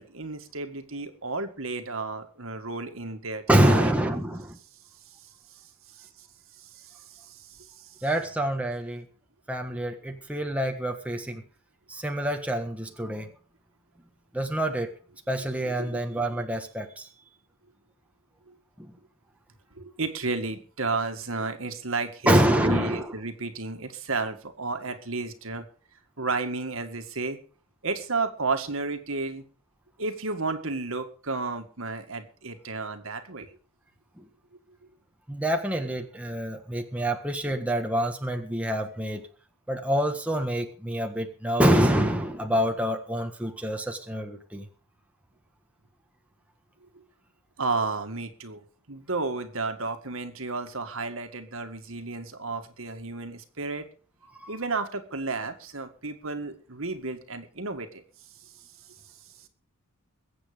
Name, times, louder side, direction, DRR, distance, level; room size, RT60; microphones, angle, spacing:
voice 1, 0.0-3.9 5.1-5.3 6.0-6.3 6.6-7.9 15.8-16.0 18.5-18.6 19.8-25.7 26.2-27.4 27.8-29.4 30.0-33.5 46.9-47.0 47.6-53.9 54.5-58.0 58.4-58.5, right 3 dB, 65° right, 7 dB, 2.0 m, -32 dB
voice 2, 3.5-4.6 8.0-9.1 9.5-11.4 11.9-13.3 14.3-14.9 15.3-17.1 18.8-18.9 22.3-23.1 35.3-39.3 39.7-44.7 54.4-54.6, right 1 dB, 5° right, 3 dB, 1.4 m, -26 dB
22.0 x 8.3 x 5.2 m, 0.39 s
head